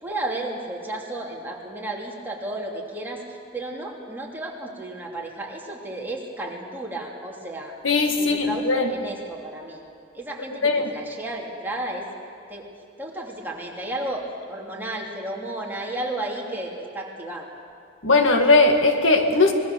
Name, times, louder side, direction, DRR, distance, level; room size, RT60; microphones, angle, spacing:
voice 1, 0.0-7.7 8.2-9.8 10.1-12.1 12.5-12.7 13.0-17.5, right 1 dB, 10° right, -2 dB, 3.0 m, -33 dB
voice 2, 7.8-8.9 10.6-10.9 18.0-19.5, left 3 dB, 85° left, 5 dB, 2.1 m, -19 dB
25.5 x 21.0 x 7.0 m, 2.4 s
head